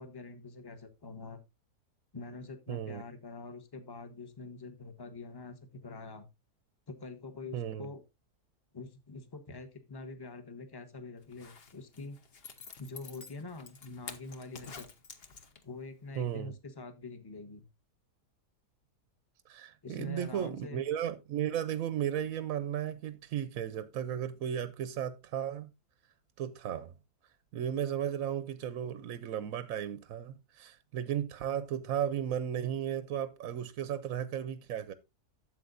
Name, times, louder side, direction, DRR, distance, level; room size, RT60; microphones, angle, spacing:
voice 1, 0.0-1.4 2.1-6.3 6.9-8.0 8.7-12.2 12.8-14.9 15.6-17.6 19.8-20.8, left 3 dB, 20° left, 0.9 m, -45 dB
voice 2, 2.7-3.0 7.5-7.9 16.2-16.5 19.5-25.7 26.4-26.9 27.5-34.9, right 10 dB, 65° right, 0.9 m, -35 dB
Zipper (clothing), 11.2-15.8 16.2-16.3, left 5 dB, 45° left, 0.9 m, -49 dB
12.0 x 7.5 x 2.5 m
omnidirectional pair, 1.7 m